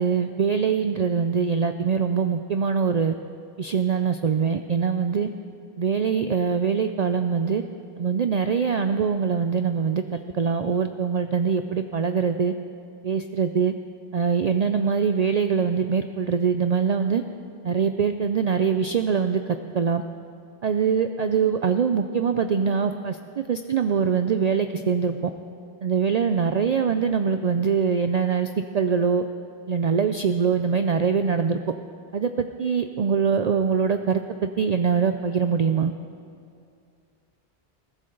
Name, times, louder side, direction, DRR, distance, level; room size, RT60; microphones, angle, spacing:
voice 1, 0.0-3.1 3.6-5.3 5.8-7.6 8.0-12.5 13.0-13.7 14.1-17.2 17.6-20.0 20.6-25.1 25.8-28.5 28.7-29.2 29.7-31.6 32.1-35.9, right 6 dB, 55° right, 8 dB, 0.5 m, -23 dB
20.5 x 15.0 x 3.9 m, 2.3 s
omnidirectional pair, 1.1 m